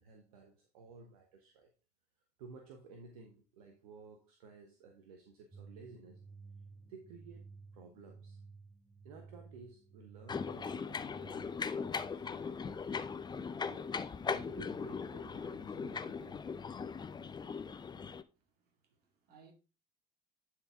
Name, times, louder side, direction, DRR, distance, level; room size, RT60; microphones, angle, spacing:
voice 1, 0.0-1.7 2.4-6.2 6.8-7.5 7.7-8.4 9.0-12.8 13.7-16.4, right 4 dB, 70° right, 1.1 m, -55 dB
sound 1, 5.5-11.7, right 4 dB, 5° right, 2.9 m, -55 dB
sound 2, 10.3-18.2, left 5 dB, 20° left, 0.6 m, -39 dB
voice 2, 18.3-19.5, right 6 dB, 55° right, 2.4 m, -64 dB
10.5 x 4.7 x 3.7 m
figure-of-eight pair, 60°, 19 cm